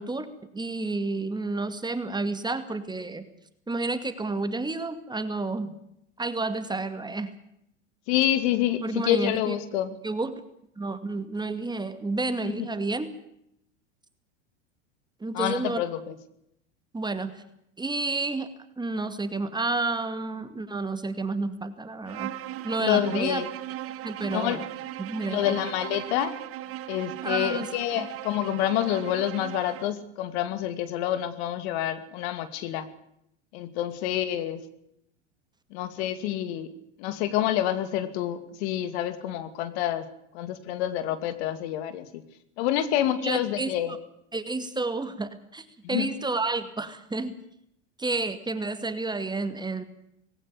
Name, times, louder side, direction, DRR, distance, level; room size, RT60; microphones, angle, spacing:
voice 1, 0.0-3.3 3.7-5.8 6.2-7.3 8.8-9.6 10.0-10.4 10.8-13.1 15.2-15.8 16.9-17.4 17.8-18.5 18.8-22.3 22.6-23.4 24.0-24.7 25.0-25.6 27.2-27.7 28.0-28.1 43.2-44.0 44.3-47.4 48.0-49.8, right 3 dB, 10° right, 10 dB, 2.2 m, -30 dB
voice 2, 8.1-10.0 12.6-12.7 15.3-16.1 22.8-23.5 24.3-24.6 25.3-26.4 26.9-32.9 33.5-34.6 35.7-36.7 37.0-40.0 40.3-42.2 42.6-43.9 45.8-46.0, left 12 dB, 60° left, 12 dB, 2.6 m, -27 dB
Bowed string instrument, 22.1-30.0, right 14 dB, 40° right, 1.3 m, -38 dB
20.0 x 18.0 x 8.5 m, 0.76 s
hypercardioid pair, 100°, 36 cm